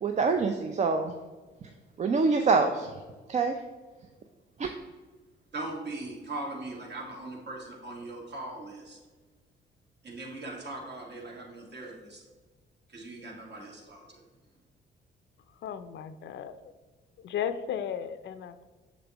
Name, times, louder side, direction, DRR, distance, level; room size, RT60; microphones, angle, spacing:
voice 1, 0.0-1.1 2.0-2.9 3.3-3.5 4.6-4.7, right 4 dB, 35° right, 5 dB, 0.5 m, -25 dB
voice 2, 5.5-9.0 10.0-12.2 12.9-14.2, right 2 dB, 60° right, -1 dB, 1.9 m, -40 dB
voice 3, 15.6-16.6 17.2-18.6, left 8 dB, 65° left, 11 dB, 0.5 m, -35 dB
6.7 x 6.2 x 3.0 m, 1.3 s
cardioid pair, 90°, 20 cm